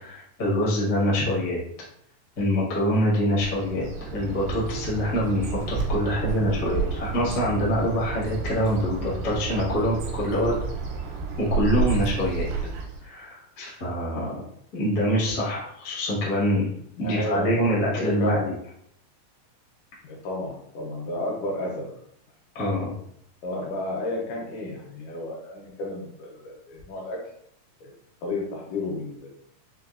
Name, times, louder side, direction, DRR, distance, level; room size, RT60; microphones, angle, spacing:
voice 1, 0.0-1.6 2.4-10.5 11.5-12.5 13.0-14.4 14.7-16.7 17.0-18.5 22.5-22.9, equal, 55° left, -7 dB, 1.0 m, -25 dB
Bird, 3.4-13.1, right 4 dB, 85° right, 2.3 m, -31 dB
voice 2, 12.3-12.7 14.1-14.3 16.1-16.3 17.0-17.6 18.0-18.4 20.0-21.9 23.4-27.2 27.8-27.9 28.2-29.3, left 2 dB, 75° left, -2 dB, 2.3 m, -32 dB
5.4 x 2.5 x 2.4 m, 0.70 s
omnidirectional pair, 3.9 m